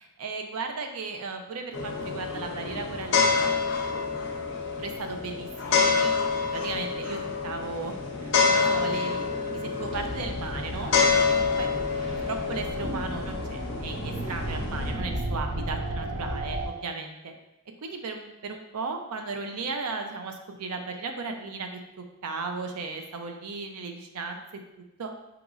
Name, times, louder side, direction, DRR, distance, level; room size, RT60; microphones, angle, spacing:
voice 1, 0.2-3.5 4.8-10.9 11.3-11.7 12.1-17.3 17.8-21.8 22.2-24.4 25.0-25.1, right 4 dB, 85° right, 4 dB, 0.5 m, -36 dB
sound 1, 1.7-14.9, left 5 dB, 55° left, 0.6 m, -27 dB
sound 2, 9.9-16.7, right 1 dB, 60° right, 0.9 m, -34 dB
5.1 x 2.9 x 2.4 m, 0.90 s
head